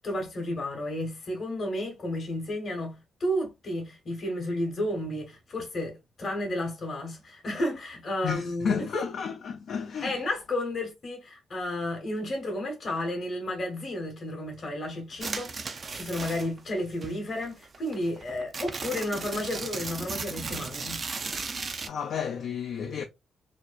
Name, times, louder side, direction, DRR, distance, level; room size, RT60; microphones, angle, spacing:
voice 1, 0.0-9.0 10.0-21.1, left 1 dB, 50° left, 0.9 m, -32 dB
voice 2, 8.2-10.2 21.8-23.0, left 7 dB, 70° left, 0.4 m, -32 dB
sound 1, 15.2-16.7 17.0-21.9, right 4 dB, 45° right, 0.4 m, -36 dB
2.6 x 2.1 x 2.3 m
supercardioid pair, 60°, 0 cm